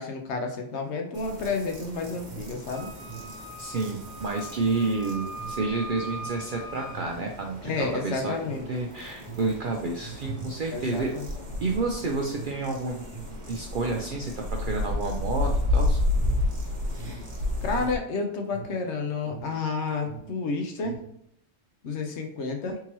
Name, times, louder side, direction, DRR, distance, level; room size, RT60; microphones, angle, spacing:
voice 1, 0.0-2.9 7.6-8.7 10.7-11.3 17.6-21.0 21.8-22.8, left 4 dB, 65° left, 3 dB, 0.9 m, -30 dB
sound 1, 1.1-18.0, left 2 dB, 40° right, 0.9 m, -32 dB
Alarm, 2.2-19.7 19.9-21.2, right 4 dB, 30° left, 1.0 m, -44 dB
Wind instrument woodwind instrument, 2.7-7.0, right 1 dB, 10° right, 0.8 m, -41 dB
voice 2, 3.6-8.3 8.7-11.1 11.6-13.0 13.5-16.0, right 3 dB, 60° right, 0 dB, 0.5 m, -30 dB
3.7 x 2.8 x 2.9 m, 0.72 s
omnidirectional pair, 1.3 m